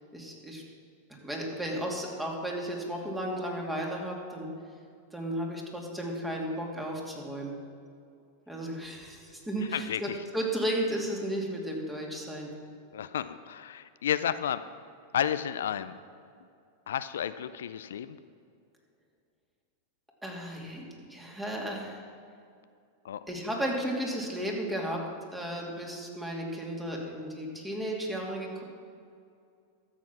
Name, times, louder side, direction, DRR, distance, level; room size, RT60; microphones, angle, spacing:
voice 1, 0.1-0.6 1.1-4.5 5.1-7.5 8.5-12.5 20.2-22.0 23.3-25.0 25.3-28.6, right 1 dB, 10° right, -1 dB, 2.6 m, -34 dB
voice 2, 9.7-10.2 12.9-14.6 15.1-15.9 16.9-18.2 23.0-23.2, left 9 dB, 80° left, 12 dB, 0.4 m, -32 dB
13.0 x 7.7 x 6.1 m, 2.4 s
hypercardioid pair, 105°, 0 cm